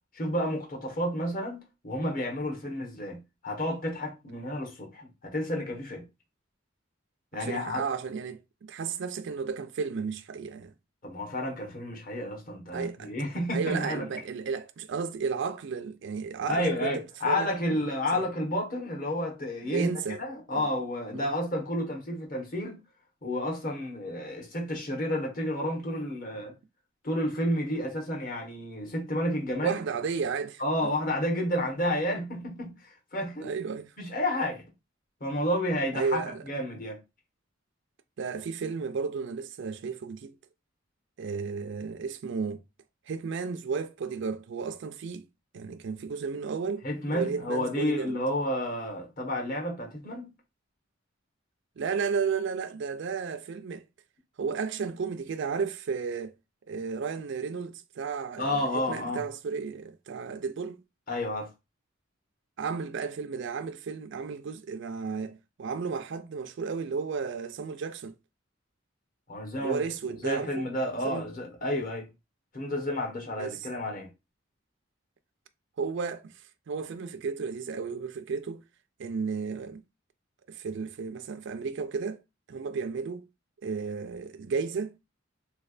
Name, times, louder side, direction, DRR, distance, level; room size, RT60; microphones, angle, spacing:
voice 1, 0.1-6.0 7.3-7.8 11.0-14.1 16.5-19.9 20.2-22.8 23.2-26.5 27.0-29.8 30.6-33.5 34.0-34.6 35.2-37.0 46.8-50.3 58.4-59.2 61.1-61.5 69.3-69.8 70.2-72.1 72.5-74.1, left 1 dB, 45° left, 1.1 m, -31 dB
voice 2, 7.4-10.7 12.7-13.1 13.5-17.5 18.1-18.3 19.7-20.2 20.5-20.7 21.1-21.3 29.6-30.6 33.4-33.9 35.9-36.4 38.2-40.4 41.2-42.6 43.1-45.2 45.5-48.1 51.8-53.8 54.4-56.3 56.7-60.8 62.6-68.2 69.6-70.7 71.0-71.2 73.4-73.7 75.8-76.3 76.7-78.6 79.0-79.8 80.5-82.2 82.5-83.3 83.6-84.9, right 5 dB, 65° right, 0.4 m, -33 dB
3.5 x 3.2 x 2.4 m
head